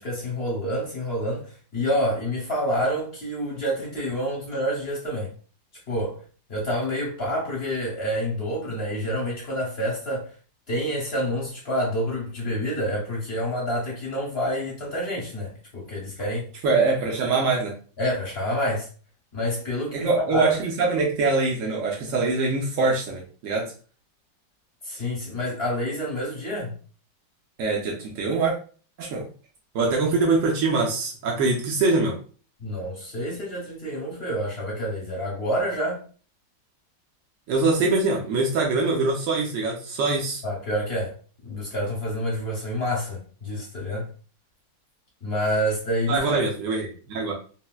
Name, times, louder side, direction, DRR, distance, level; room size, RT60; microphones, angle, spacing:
voice 1, 0.0-5.3 5.9-6.2 6.5-10.3 10.7-16.5 18.0-18.9 19.3-20.6 24.8-26.8 32.6-36.0 40.4-41.1 41.4-44.1 45.2-46.4, equal, 50° left, 0.7 m, -28 dB
voice 2, 16.6-17.7 19.9-23.7 27.6-28.5 29.0-29.3 29.7-32.2 37.5-40.4 46.1-47.3, right 3 dB, 70° right, 0.8 m, -23 dB
4.0 x 2.0 x 2.2 m
omnidirectional pair, 2.0 m